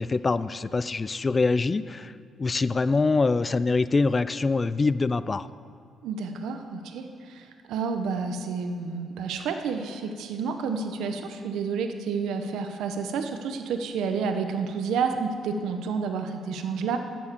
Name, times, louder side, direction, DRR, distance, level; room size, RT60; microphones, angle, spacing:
voice 1, 0.0-2.1 2.4-5.5, left 3 dB, 30° left, 15 dB, 0.3 m, -24 dB
voice 2, 6.0-17.0, right 5 dB, 85° right, 6 dB, 0.9 m, -30 dB
11.0 x 7.2 x 7.4 m, 2.3 s
cardioid pair, 90°, 0 cm